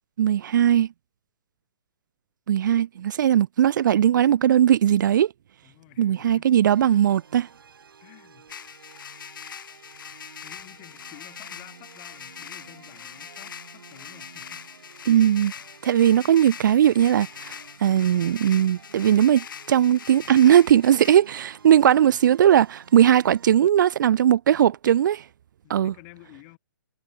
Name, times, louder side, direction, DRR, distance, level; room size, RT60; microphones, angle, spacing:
voice 1, 0.2-0.9 2.5-5.3 6.0-7.5 15.1-15.5 15.8-17.5 17.8-25.2 25.7-25.9, right 10 dB, 60° right, 0.4 m, -19 dB
voice 2, 5.6-6.5 8.0-8.5 10.4-14.6 21.9-22.2 25.6-26.6, left 30 dB, 35° left, 6.0 m, -51 dB
sound 1, 6.7-23.5, right 6 dB, 75° right, 7.9 m, -51 dB
sound 2, 8.5-21.2, left 8 dB, 65° left, 2.1 m, -42 dB
hypercardioid pair, 140°, 12 cm